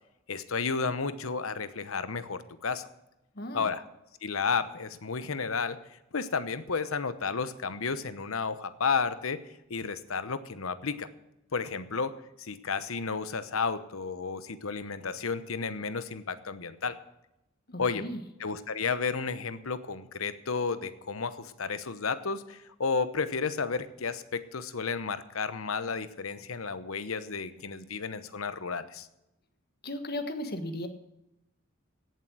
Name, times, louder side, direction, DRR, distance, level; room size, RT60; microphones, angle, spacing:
voice 1, 0.3-2.9 3.5-3.8 4.2-9.4 9.7-11.1 11.5-17.0 17.8-18.0 18.4-29.1, left 5 dB, 80° left, 13 dB, 0.9 m, -32 dB
voice 2, 17.7-18.2 29.8-30.9, left 1 dB, 50° left, 7 dB, 1.5 m, -35 dB
17.0 x 7.7 x 6.2 m, 0.89 s
head